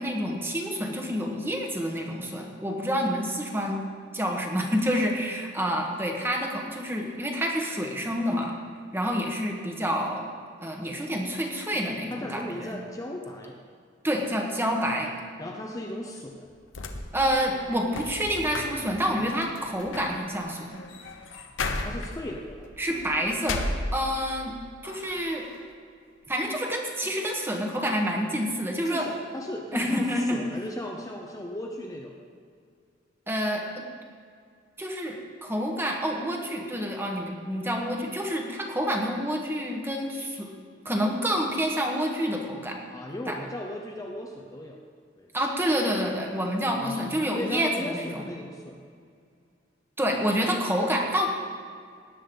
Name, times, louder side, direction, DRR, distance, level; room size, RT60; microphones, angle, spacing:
voice 1, 0.0-8.5 8.9-10.2 10.6-12.8 14.0-15.1 17.1-20.8 22.8-23.6 23.9-24.5 24.8-25.4 26.3-29.1 29.7-30.4 33.3-33.8 34.8-40.5 40.8-42.8 43.3-43.4 45.3-48.2 50.0-51.3, equal, 10° right, 1 dB, 1.5 m, -28 dB
voice 2, 12.1-13.6 15.4-16.5 21.8-22.7 28.8-32.2 42.9-44.8 45.2-45.3 46.8-47.1 47.3-48.8, left 1 dB, 20° left, 0 dB, 0.8 m, -36 dB
sound 1, 16.5-24.4 24.8-25.6, left 2 dB, 90° left, 1.0 m, -36 dB
18.0 x 9.9 x 4.0 m, 2.2 s
head